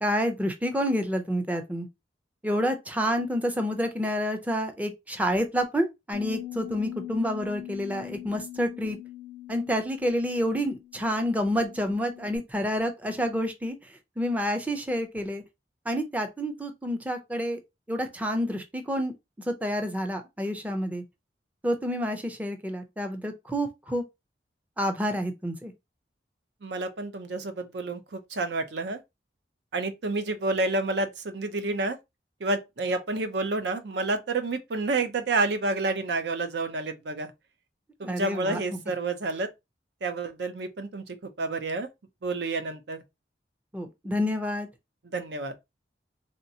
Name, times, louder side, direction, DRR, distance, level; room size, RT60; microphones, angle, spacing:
voice 1, 0.0-1.9 2.4-9.0 9.5-13.8 14.2-15.4 15.9-17.6 17.9-19.1 19.5-21.0 21.6-24.0 24.8-25.7 38.0-38.8 43.7-44.7, equal, 10° right, 0.5 m, -28 dB
Bass guitar, 6.1-12.4, left 14 dB, 55° right, 1.5 m, -42 dB
voice 2, 26.6-29.0 29.7-32.0 32.4-37.3 38.0-39.5 40.0-41.9 42.2-43.0 45.1-45.5, right 2 dB, 75° right, 0.6 m, -29 dB
3.3 x 2.8 x 2.7 m
head